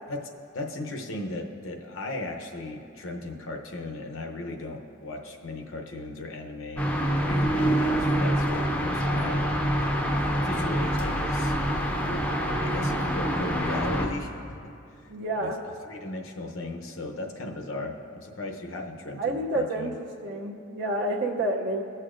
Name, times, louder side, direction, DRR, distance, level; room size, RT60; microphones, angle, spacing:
voice 1, 0.1-6.9 7.2-9.4 10.3-11.5 12.0-12.2 12.6-15.0 15.4-15.5 15.8-19.9, left 2 dB, 65° left, 2 dB, 0.8 m, -36 dB
sound 1, 6.8-14.1, equal, 5° left, 0.6 m, -26 dB
voice 2, 15.1-15.6 19.2-19.9 20.2-21.8, right 1 dB, 60° right, 0 dB, 0.7 m, -29 dB
17.0 x 6.6 x 2.5 m, 2.5 s
head